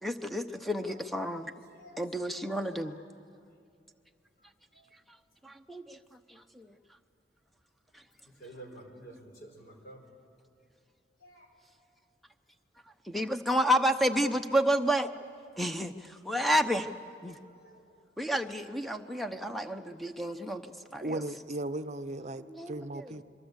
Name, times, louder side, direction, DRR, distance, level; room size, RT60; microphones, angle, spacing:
voice 1, 0.0-1.5 2.0-3.0 5.4-6.0 6.6-6.7 13.1-15.1 15.6-15.9 16.3-16.9 17.2-17.4 18.2-20.6 20.9-21.2 22.5-23.2, equal, ahead, 7 dB, 0.8 m, -30 dB
voice 2, 0.6-1.0 1.3-3.0 4.7-4.8 8.4-10.0 11.2-11.5 17.2-17.8 19.1-19.2 20.6-20.7, right 1 dB, 55° left, 2 dB, 4.6 m, -52 dB
voice 3, 21.0-23.2, right 1 dB, 40° right, 12 dB, 0.7 m, -36 dB
27.0 x 23.0 x 8.2 m, 2.5 s
head